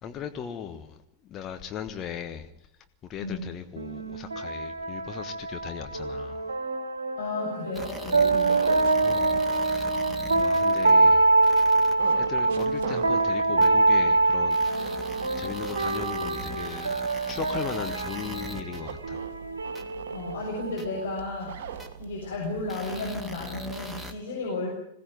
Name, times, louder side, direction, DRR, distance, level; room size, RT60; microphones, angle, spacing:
voice 1, 0.0-1.0 1.3-2.5 3.1-6.5 9.0-11.3 11.7-15.1 15.4-17.0 17.3-19.2, left 8 dB, 30° left, 1.3 m, -38 dB
voice 2, 3.2-3.5 7.2-8.7 20.1-24.7, left 2 dB, 60° left, 6.5 m, -33 dB
sound 1, 3.8-21.2, right 3 dB, 70° right, 1.7 m, -25 dB
sound 2, 7.7-10.9 11.4-11.9 12.6-12.7 13.6-13.7 14.5-18.8 19.8-19.9 20.8-20.9 21.8-21.9 22.7-24.1, equal, 5° right, 2.2 m, -41 dB
sound 3, 8.2-23.5, right 7 dB, 55° right, 2.2 m, -43 dB
21.5 x 17.0 x 9.3 m
figure-of-eight pair, 90°, 0 cm